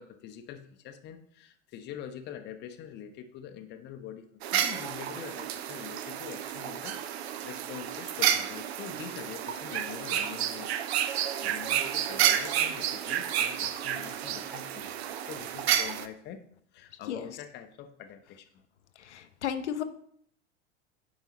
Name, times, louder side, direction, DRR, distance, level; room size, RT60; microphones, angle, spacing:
voice 1, 0.0-4.3 4.5-10.7 11.1-16.4 16.7-18.6, left 9 dB, 30° left, 7 dB, 0.7 m, -44 dB
sound 1, 4.4-16.1, right 10 dB, 60° right, 0.6 m, -30 dB
voice 2, 19.0-19.8, left 9 dB, 70° left, 10 dB, 0.6 m, -33 dB
8.9 x 4.8 x 2.9 m, 0.66 s
figure-of-eight pair, 85°, 36 cm